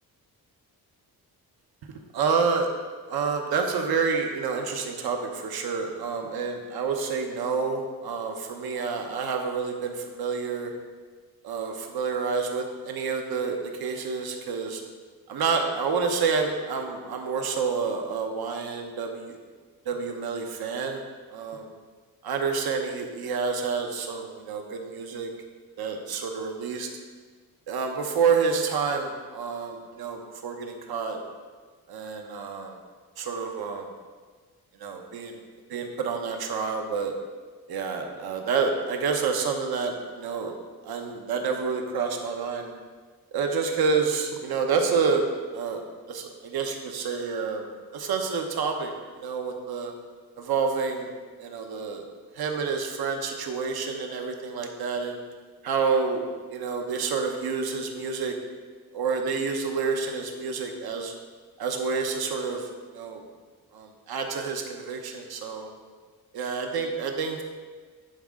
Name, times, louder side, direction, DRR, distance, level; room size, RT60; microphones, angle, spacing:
voice 1, 2.1-2.7 3.1-10.7 11.4-14.8 15.3-19.4 19.8-21.0 21.3-21.7 22.2-25.3 25.8-26.9 27.7-31.2 31.9-32.8 33.2-33.9 34.8-35.4 35.7-37.1 37.7-40.5 40.8-42.7 43.3-45.3 45.5-45.8 46.1-47.7 47.9-49.9 50.4-51.1 51.4-52.0 52.3-55.2 55.6-56.2 56.5-58.4 58.9-61.1 61.6-62.7 62.9-63.2 63.7-65.7 66.3-67.4, right 5 dB, 80° right, 3 dB, 1.0 m, -28 dB
11.0 x 4.3 x 3.7 m, 1.5 s
wide cardioid pair, 150°, 36 cm